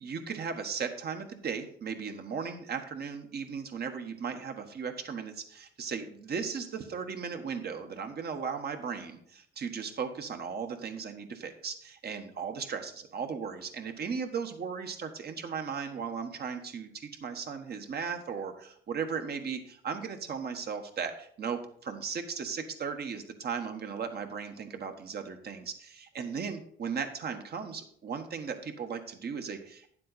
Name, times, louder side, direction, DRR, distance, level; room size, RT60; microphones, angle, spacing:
voice 1, 0.0-29.9, right 6 dB, 55° right, 6 dB, 1.3 m, -36 dB
9.6 x 7.5 x 4.1 m, 0.63 s
cardioid pair, 90°, 20 cm